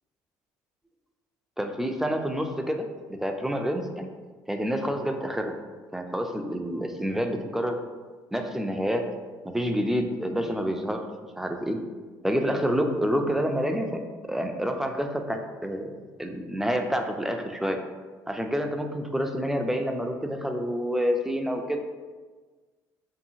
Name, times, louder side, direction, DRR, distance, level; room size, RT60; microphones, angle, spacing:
voice 1, 1.6-4.1 4.5-5.5 5.9-7.8 8.3-9.1 9.4-11.0 11.4-11.8 12.2-15.9 16.2-17.8 18.3-21.8, equal, 5° right, 4 dB, 0.3 m, -28 dB
2.7 x 2.3 x 2.6 m, 1.4 s
supercardioid pair, 70°, 9 cm